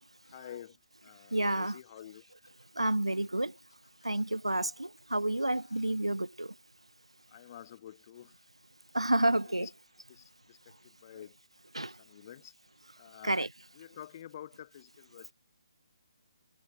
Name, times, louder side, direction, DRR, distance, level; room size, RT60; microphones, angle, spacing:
voice 1, 0.2-2.3 7.3-8.4 9.4-9.7 10.1-11.4 11.8-12.5 13.0-13.4 13.7-15.3, left 11 dB, 35° left, 3.3 m, -49 dB
voice 2, 1.3-1.7 2.8-3.5 4.0-6.5 8.9-9.7 11.7-11.9 13.2-13.5, right 1 dB, 85° right, 0.3 m, -29 dB
Scratching (performance technique), 1.6-6.0, left 4 dB, 60° left, 2.8 m, -67 dB
figure-of-eight pair, 140°, 3 cm